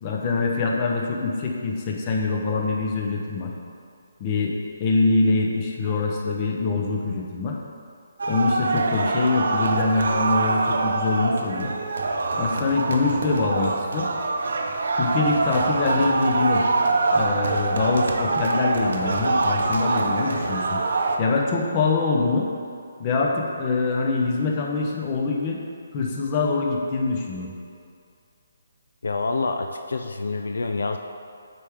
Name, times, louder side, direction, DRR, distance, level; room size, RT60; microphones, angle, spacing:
voice 1, 0.0-3.5 4.2-4.5 4.8-7.6 8.3-11.7 12.4-14.1 15.0-16.6 17.1-20.8 21.2-22.5 23.0-25.6 25.9-27.5, left 3 dB, 30° left, -1 dB, 0.8 m, -24 dB
sound 1, 8.2-21.2, right 3 dB, 70° right, 0.7 m, -24 dB
voice 2, 29.0-31.0, left 3 dB, 80° left, 5 dB, 0.4 m, -27 dB
8.0 x 4.6 x 3.6 m, 2.4 s
hypercardioid pair, 160°, 0 cm